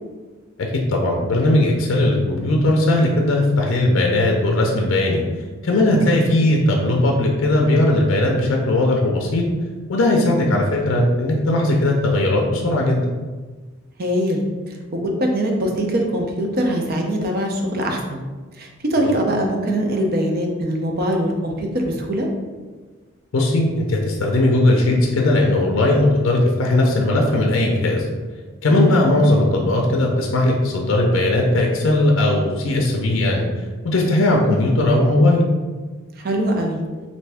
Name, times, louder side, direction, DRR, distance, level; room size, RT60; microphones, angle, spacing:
voice 1, 0.6-5.2 5.6-9.4 9.9-13.0 23.3-28.1 28.6-35.4, left 1 dB, 70° left, 0 dB, 0.5 m, -18 dB
voice 2, 14.0-18.2 18.6-22.3 28.7-29.0 36.2-36.8, equal, 45° right, 2 dB, 0.5 m, -22 dB
3.3 x 2.6 x 3.4 m, 1.4 s
head